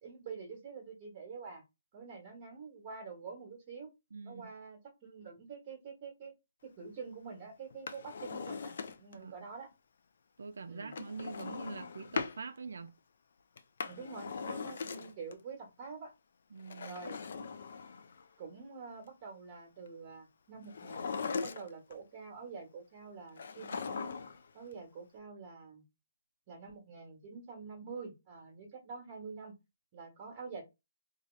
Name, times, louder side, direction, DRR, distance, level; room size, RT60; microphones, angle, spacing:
voice 1, 0.0-1.6 1.9-3.9 4.2-6.3 6.6-8.7 9.0-9.7 10.7-10.9 11.4-11.5 13.8-16.1 16.8-17.2 18.4-24.0 24.5-25.8 26.5-29.5 29.9-30.6, right 5 dB, 35° right, 1.1 m, -47 dB
voice 2, 4.1-4.5 9.1-9.4 10.4-12.9 16.5-17.0, right 5 dB, 75° right, 0.4 m, -44 dB
Drawer open or close, 7.7-9.2 10.9-12.4 13.6-15.3 16.6-18.2 20.7-21.9 23.4-24.5 24.7-24.8, left 5 dB, 65° left, 0.4 m, -40 dB
2.7 x 2.3 x 3.0 m
hypercardioid pair, 150°, 0 cm